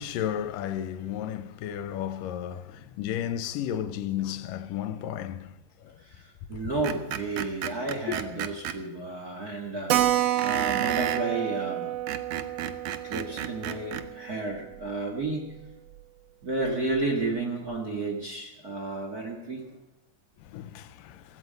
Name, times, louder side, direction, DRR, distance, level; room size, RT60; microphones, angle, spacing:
voice 1, 0.0-5.5 5.8-5.9 20.5-21.2, left 10 dB, 85° left, 2.3 m, -33 dB
voice 2, 6.0-11.9 13.0-15.5 16.4-19.8, right 2 dB, 35° right, 1.6 m, -32 dB
Screech, 6.8-8.8 10.4-11.3 11.9-14.1, right 10 dB, 85° right, 1.4 m, -33 dB
Keyboard (musical), 9.9-15.0 15.2-15.3 15.6-15.7 16.0-16.1 16.6-17.0, right 12 dB, 70° right, 1.7 m, -29 dB
16.0 x 15.5 x 5.3 m
omnidirectional pair, 3.9 m